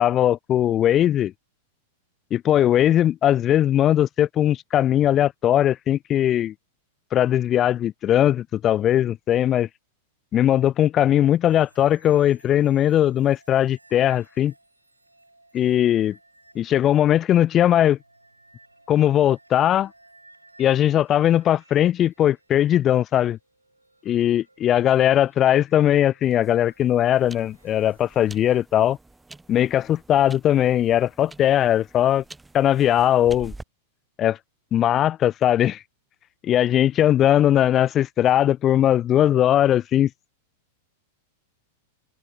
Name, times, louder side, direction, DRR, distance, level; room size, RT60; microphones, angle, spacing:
voice 1, 0.0-1.3 2.3-6.5 7.1-9.7 10.3-14.5 15.5-16.2 16.6-18.0 18.9-19.9 20.6-23.4 24.1-29.0 29.5-32.2 32.5-33.5 34.2-34.4 34.7-35.8 36.4-40.1, left 11 dB, 30° left, 0.4 m, -19 dB
sound 1, 11.5-28.6, right 2 dB, 85° right, 7.2 m, -57 dB
sound 2, 26.2-33.6, right 2 dB, 5° right, 2.0 m, -47 dB
figure-of-eight pair, 95°, 0 cm